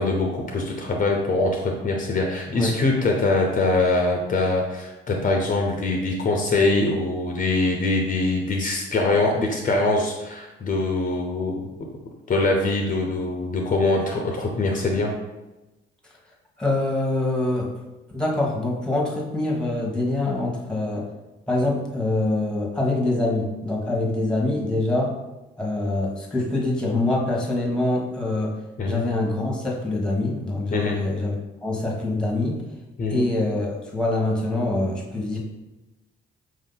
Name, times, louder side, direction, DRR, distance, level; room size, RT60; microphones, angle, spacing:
voice 1, 0.0-11.7 12.3-15.1 28.8-29.0 30.7-31.0 33.0-33.3, left 2 dB, 40° left, 1 dB, 0.6 m, -23 dB
voice 2, 16.6-17.7 18.1-21.1 21.5-25.1 25.6-28.6 28.8-31.3 31.6-32.6 33.1-35.4, left 2 dB, 5° left, -2 dB, 1.1 m, -24 dB
4.8 x 2.7 x 3.9 m, 1.1 s
cardioid pair, 90°, 20 cm